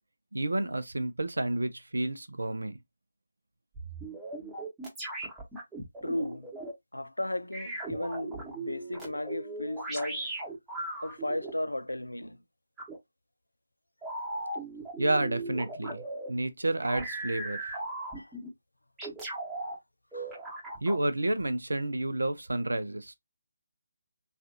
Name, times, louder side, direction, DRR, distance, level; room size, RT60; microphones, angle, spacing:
voice 1, 0.3-2.8 15.0-16.0 16.3-17.6 20.8-23.1, right 2 dB, 70° right, 0.5 m, -30 dB
sound 1, 3.7-6.7 7.5-11.5 12.8-13.0 14.0-16.3 16.8-18.5 19.0-19.7 20.1-21.0, right 2 dB, 5° right, 0.9 m, -38 dB
voice 2, 6.0-6.5 6.9-10.3 11.0-12.4 18.2-18.3 20.1-20.3, left 1 dB, 80° left, 0.4 m, -35 dB
3.3 x 2.4 x 2.6 m
figure-of-eight pair, 150°, 0 cm